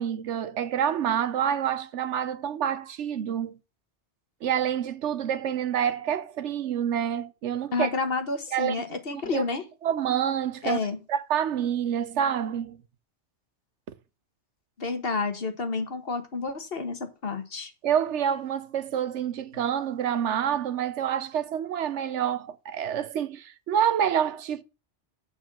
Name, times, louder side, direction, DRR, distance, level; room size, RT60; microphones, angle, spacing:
voice 1, 0.0-3.5 4.4-7.9 8.5-8.8 9.1-9.4 9.8-10.8 11.1-12.8 17.8-24.6, right 9 dB, 75° right, 1.0 m, -27 dB
voice 2, 7.7-9.6 10.6-11.0 14.8-17.7, left 4 dB, 55° left, 1.6 m, -30 dB
7.1 x 5.5 x 7.3 m
omnidirectional pair, 1.2 m